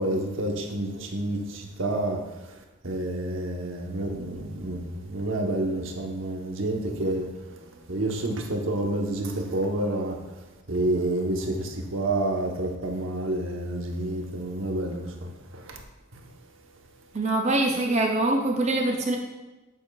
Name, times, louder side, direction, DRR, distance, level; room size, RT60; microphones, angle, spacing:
voice 1, 0.0-2.2 2.8-7.3 7.9-10.2 10.7-15.1 15.7-15.8, right 1 dB, 70° right, 2 dB, 1.0 m, -28 dB
voice 2, 17.1-19.2, right 2 dB, 35° right, 2 dB, 0.5 m, -24 dB
8.3 x 7.0 x 2.3 m, 1.1 s
head